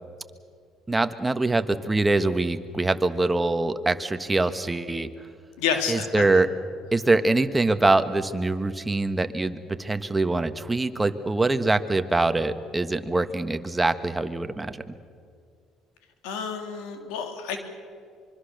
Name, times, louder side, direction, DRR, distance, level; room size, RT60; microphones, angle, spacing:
voice 1, 0.9-5.1 5.9-6.5 6.9-14.8, right 2 dB, 15° right, 9 dB, 1.5 m, -24 dB
voice 2, 5.6-6.3 16.2-17.6, left 7 dB, 85° left, 5 dB, 3.1 m, -29 dB
25.0 x 23.5 x 6.9 m, 2.2 s
supercardioid pair, 75°, 0 cm